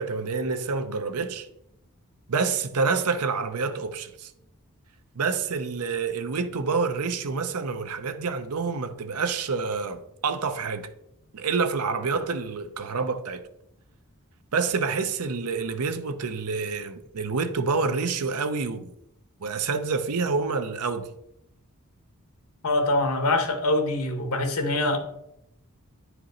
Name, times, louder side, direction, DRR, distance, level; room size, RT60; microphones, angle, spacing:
voice 1, 0.0-1.5 2.3-4.3 5.2-10.9 11.3-13.4 14.5-18.9 19.4-21.1, right 4 dB, 85° right, 0.7 m, -28 dB
voice 2, 22.6-25.0, left 2 dB, 75° left, 1.2 m, -24 dB
9.9 x 4.6 x 3.9 m
head